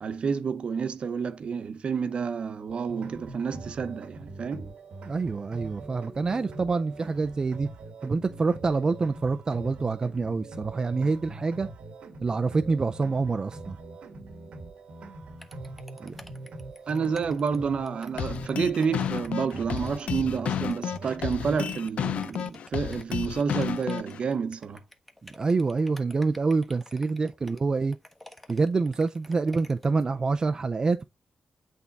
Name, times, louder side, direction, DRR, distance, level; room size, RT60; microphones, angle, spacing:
voice 1, 0.0-4.7 16.9-24.8 27.4-27.5, right 6 dB, 60° right, 0.8 m, -29 dB
sound 1, 2.7-21.5, right 2 dB, 75° right, 1.1 m, -43 dB
voice 2, 5.1-7.7 8.0-11.7 12.2-13.8 16.0-16.1 25.2-28.0 28.5-31.0, right 4 dB, 35° right, 0.4 m, -26 dB
sound 2, 15.4-30.0, left 1 dB, 5° left, 1.1 m, -51 dB
sound 3, 18.2-24.2, left 9 dB, 80° left, 0.4 m, -31 dB
8.2 x 3.5 x 4.0 m
cardioid pair, 95°, 2 cm